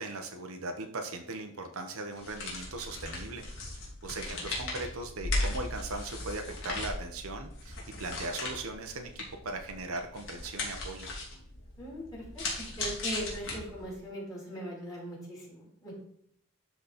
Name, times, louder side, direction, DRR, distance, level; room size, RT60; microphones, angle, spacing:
voice 1, 0.0-3.5 4.0-11.1, right 2 dB, 80° right, 5 dB, 1.2 m, -39 dB
sound 1, 2.1-14.0, left 2 dB, 60° left, 2.8 m, -37 dB
voice 2, 11.8-15.9, equal, 15° left, -4 dB, 3.5 m, -40 dB
12.0 x 4.3 x 4.3 m, 0.70 s
head